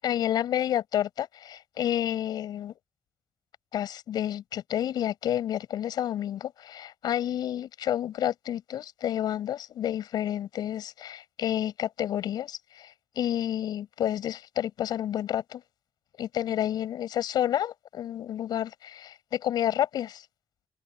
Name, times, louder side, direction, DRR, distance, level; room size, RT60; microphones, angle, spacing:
voice 1, 0.0-2.7 3.7-15.6 16.2-20.3, left 11 dB, 75° left, 7.9 m, -30 dB
open air
cardioid pair, 70°, 7 cm